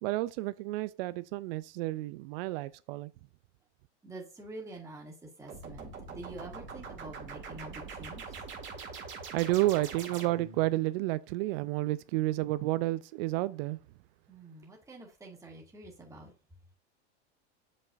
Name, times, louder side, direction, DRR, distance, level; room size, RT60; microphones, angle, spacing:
voice 1, 0.0-3.1 9.3-13.8, right 17 dB, 60° right, 0.4 m, -31 dB
voice 2, 4.0-5.1 5.4-8.4 14.3-16.3, right 2 dB, 10° right, 1.9 m, -47 dB
sound 1, 5.5-10.7, right 5 dB, 35° right, 2.0 m, -43 dB
7.3 x 5.4 x 2.5 m
supercardioid pair, 120°, 33 cm